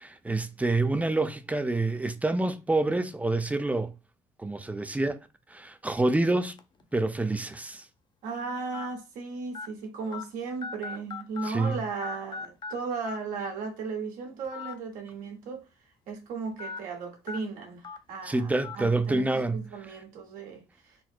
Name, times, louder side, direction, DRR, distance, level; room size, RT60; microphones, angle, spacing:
voice 1, 0.0-3.9 4.4-5.2 5.5-6.6 6.9-7.8 11.4-11.8 18.2-19.6, right 2 dB, 10° right, 0.5 m, -27 dB
sound 1, 6.6-6.8 7.5-7.6 8.7-8.9 9.5-9.7 10.1-10.2 10.6-11.8 12.0-12.7 13.0-13.2 14.4-14.7 15.1-15.2 16.6-16.8 17.3-17.4 17.8-18.0 18.6-18.8, left 5 dB, 35° left, 0.5 m, -38 dB
voice 2, 8.2-15.6 16.1-19.2 19.5-20.9, right 4 dB, 80° right, 1.4 m, -36 dB
4.1 x 2.0 x 4.4 m
cardioid pair, 90°, 14 cm